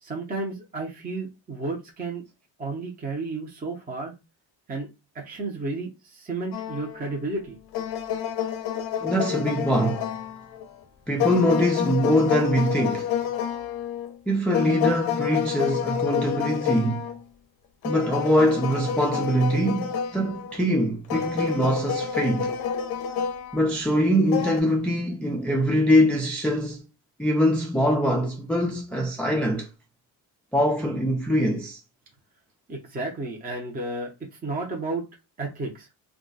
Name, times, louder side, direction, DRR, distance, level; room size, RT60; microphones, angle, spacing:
voice 1, 0.0-2.2 2.6-4.1 4.7-4.9 5.1-7.6 32.7-35.0 35.4-35.9, right 3 dB, 20° right, 0.7 m, -32 dB
sound 1, 6.5-7.3 7.7-10.7 11.2-14.2 14.5-17.2 17.8-20.6 21.1-23.8 24.3-24.6, left 8 dB, 55° left, 0.6 m, -29 dB
voice 2, 9.0-10.1 11.1-13.1 14.3-17.0 17.8-22.6 23.5-26.8 27.2-29.7 30.5-31.8, equal, 5° left, 0.3 m, -23 dB
2.4 x 2.2 x 3.8 m
cardioid pair, 130°, 45 cm